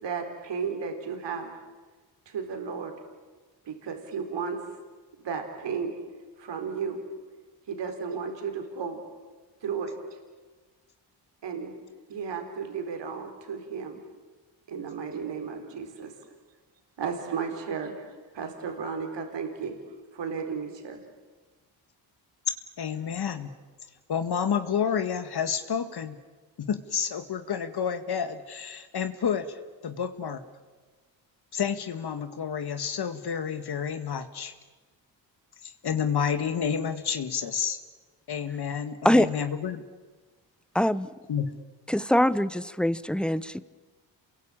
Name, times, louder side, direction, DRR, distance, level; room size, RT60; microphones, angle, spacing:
voice 1, 0.0-1.7 2.3-2.9 3.6-4.8 5.2-6.0 6.4-7.0 7.7-9.2 9.6-9.9 11.4-11.8 12.1-14.0 14.7-16.4 17.0-19.8 20.1-21.0, right 6 dB, 65° right, 4.4 m, -34 dB
voice 2, 22.8-23.5 24.1-26.2 26.6-30.4 31.5-34.5 35.6-37.8 38.3-39.8 41.3-41.6, left 7 dB, 55° left, 1.9 m, -30 dB
voice 3, 40.7-41.1 41.9-43.6, left 1 dB, ahead, 0.9 m, -23 dB
28.0 x 22.5 x 8.8 m
cardioid pair, 70°, 45 cm